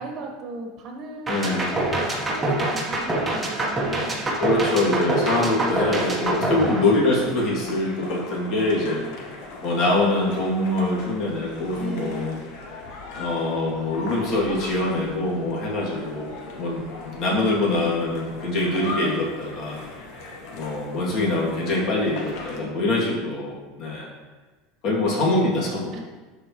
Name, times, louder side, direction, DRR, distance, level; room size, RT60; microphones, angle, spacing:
voice 1, 0.0-4.3 6.5-6.7 8.8-9.1 11.8-12.3 21.6-22.0 22.4-22.8 25.9-26.0, right 2 dB, 40° right, 1 dB, 1.3 m, -37 dB
voice 2, 1.3-1.7 4.4-9.3 9.6-12.4 13.2-19.8 20.5-24.1 24.8-25.9, left 2 dB, 45° left, -4 dB, 2.3 m, -24 dB
sound 1, 1.3-7.5, right 2 dB, 10° right, 1.1 m, -25 dB
sound 2, 6.9-22.6, left 2 dB, 60° left, 1.2 m, -38 dB
11.5 x 4.5 x 3.0 m, 1.3 s
supercardioid pair, 150°, 0 cm